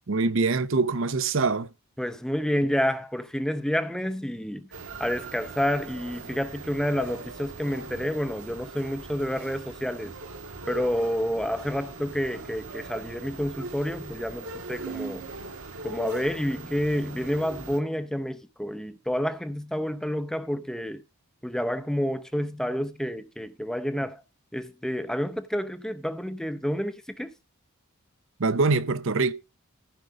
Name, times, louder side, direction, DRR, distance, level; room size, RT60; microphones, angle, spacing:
voice 1, 0.1-1.7 28.4-29.3, right 3 dB, 60° right, 0.7 m, -24 dB
voice 2, 2.0-4.7 5.0-10.1 10.7-15.2 15.8-21.0 21.4-24.2 24.5-27.3, equal, 5° left, 0.6 m, -29 dB
sound 1, 4.7-17.8, right 3 dB, 80° right, 1.5 m, -40 dB
15.0 x 5.0 x 5.2 m
head